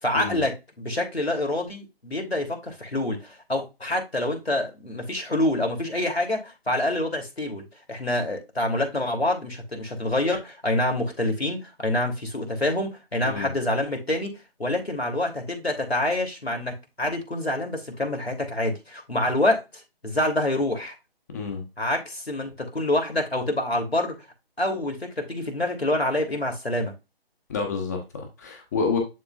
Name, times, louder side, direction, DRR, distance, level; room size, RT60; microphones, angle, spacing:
voice 1, 0.0-14.3 14.6-20.9 21.8-24.2 24.6-26.9, left 1 dB, 85° left, 3.1 m, -26 dB
voice 2, 21.3-21.6 27.5-29.0, left 5 dB, 15° left, 1.2 m, -29 dB
11.5 x 3.8 x 2.4 m
figure-of-eight pair, 150°, 30 cm